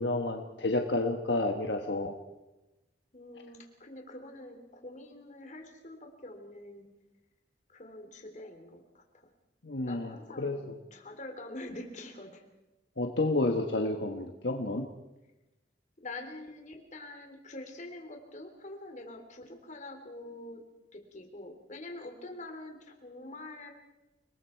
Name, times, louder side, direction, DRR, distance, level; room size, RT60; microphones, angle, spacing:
voice 1, 0.0-2.1 9.6-10.7 13.0-14.9, left 2 dB, 70° left, 3 dB, 1.4 m, -30 dB
voice 2, 3.1-6.9 7.7-9.3 9.9-12.4 16.0-20.6 20.9-23.7, left 2 dB, 45° left, 3 dB, 3.6 m, -45 dB
29.5 x 20.0 x 4.6 m, 1.0 s
head